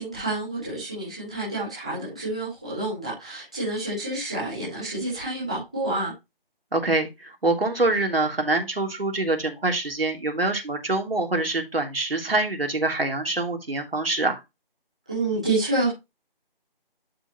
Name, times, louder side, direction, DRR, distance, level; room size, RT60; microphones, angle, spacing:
voice 1, 0.0-6.1 15.1-15.9, right 2 dB, 5° right, 1.5 m, -28 dB
voice 2, 6.7-14.4, right 2 dB, 80° right, 3.2 m, -25 dB
12.0 x 4.7 x 3.0 m
figure-of-eight pair, 180°, 29 cm